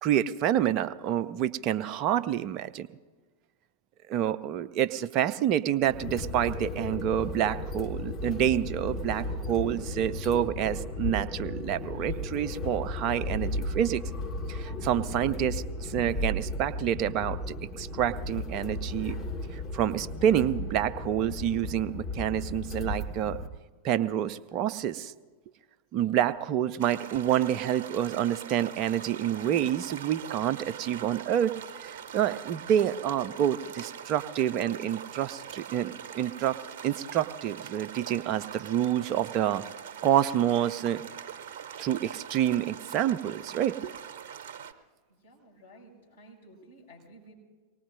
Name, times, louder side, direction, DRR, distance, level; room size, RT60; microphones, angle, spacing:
voice 1, 0.0-2.9 4.1-14.0 14.5-19.2 19.5-23.4 23.8-25.1 25.9-36.6 36.8-39.6 40.0-41.0 41.8-43.9, right 10 dB, 40° right, 12 dB, 0.5 m, -28 dB
sound 1, 5.8-23.5, left 2 dB, 25° left, 1.4 m, -35 dB
sound 2, 26.8-44.7, right 8 dB, 55° right, 0.9 m, -43 dB
voice 2, 45.2-47.4, right 1 dB, 70° left, -5 dB, 6.5 m, -53 dB
24.0 x 19.5 x 2.6 m, 1.4 s
figure-of-eight pair, 90°, 0 cm